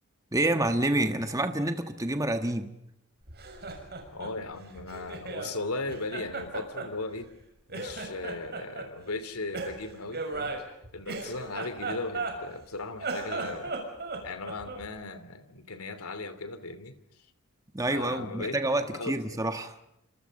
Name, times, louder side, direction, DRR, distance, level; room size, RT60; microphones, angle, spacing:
voice 1, 0.3-2.8 17.7-19.8, right 1 dB, 15° right, 1.5 m, -28 dB
Laughter, 3.3-5.5 5.9-7.4 7.7-8.9 9.5-12.6 12.9-14.9, right 3 dB, 45° right, 6.4 m, -36 dB
voice 2, 4.1-7.3 7.7-10.5 10.9-13.8 14.2-17.0 17.9-19.4, left 3 dB, 90° left, 2.9 m, -37 dB
29.0 x 26.5 x 5.5 m
head